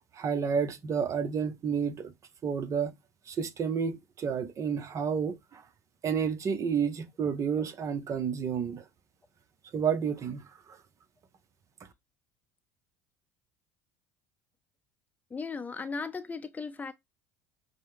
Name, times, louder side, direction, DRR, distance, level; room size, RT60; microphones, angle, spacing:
voice 1, 0.1-2.1 2.4-2.9 3.3-5.6 6.0-8.8 9.7-10.8, right 6 dB, 40° right, 0.9 m, -30 dB
voice 2, 15.3-16.9, left 4 dB, 20° left, 0.7 m, -36 dB
5.3 x 2.2 x 3.3 m
hypercardioid pair, 75°, 8 cm